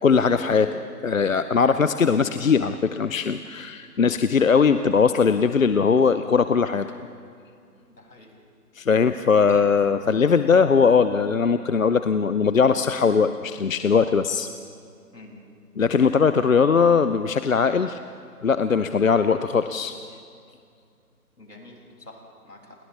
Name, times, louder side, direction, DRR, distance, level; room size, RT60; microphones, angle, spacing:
voice 1, 0.0-6.9 8.8-14.5 15.8-18.0 18.4-20.0, left 5 dB, 60° left, 11 dB, 0.8 m, -20 dB
voice 2, 7.9-8.3 9.5-9.7 15.1-15.4 21.4-22.8, left 2 dB, 85° left, -1 dB, 6.4 m, -46 dB
29.5 x 28.0 x 3.3 m, 2.3 s
figure-of-eight pair, 155°, 47 cm